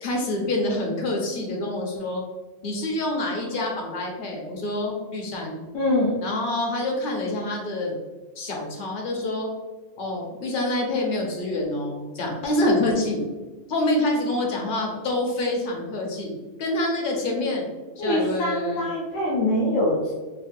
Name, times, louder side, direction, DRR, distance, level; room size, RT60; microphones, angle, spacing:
voice 1, 0.0-2.2 2.6-5.6 6.2-7.9 8.4-9.5 10.0-13.2 13.7-16.3 16.6-17.6 18.0-18.9, left 1 dB, 50° left, 0 dB, 0.7 m, -26 dB
voice 2, 5.7-6.2 18.0-20.2, left 1 dB, 75° left, -5 dB, 1.1 m, -23 dB
4.6 x 2.1 x 2.6 m, 1.2 s
omnidirectional pair, 1.4 m